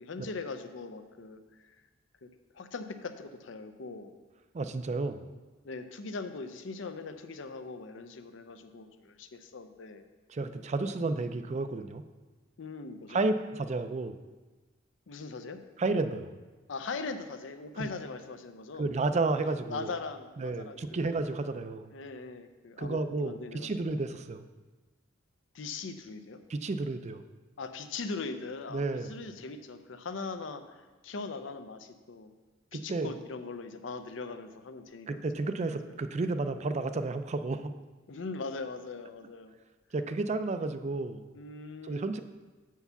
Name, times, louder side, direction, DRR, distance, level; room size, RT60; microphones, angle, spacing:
voice 1, 0.0-1.7 2.2-2.3 2.5-4.1 5.6-10.0 12.6-13.2 15.1-15.6 16.7-18.9 19.4-21.1 21.9-24.0 25.5-26.4 27.6-32.3 32.7-35.2 35.9-36.0 38.1-39.6 41.3-42.1, left 4 dB, 70° left, 9 dB, 0.6 m, -40 dB
voice 2, 4.5-5.2 10.3-12.0 13.1-14.2 15.8-16.3 17.8-17.9 18.8-19.9 20.4-21.9 22.8-24.4 26.5-27.2 28.7-29.1 32.7-33.1 35.1-37.7 39.9-41.3 41.8-42.2, right 3 dB, 35° right, 10 dB, 0.4 m, -31 dB
6.7 x 4.7 x 6.9 m, 1.2 s
head